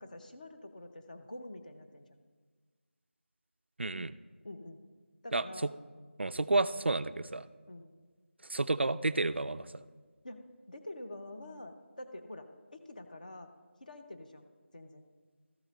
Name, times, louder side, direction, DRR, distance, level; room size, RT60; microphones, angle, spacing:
voice 1, 0.0-2.2 4.4-4.8 5.2-5.7 7.7-7.9 10.2-13.5 13.8-15.1, left 1 dB, 40° left, 6 dB, 0.7 m, -47 dB
voice 2, 3.8-4.2 5.3-5.7 6.2-7.5 8.4-9.8, right 2 dB, 60° right, 13 dB, 0.3 m, -31 dB
13.5 x 8.1 x 4.1 m, 1.4 s
figure-of-eight pair, 175°, 7 cm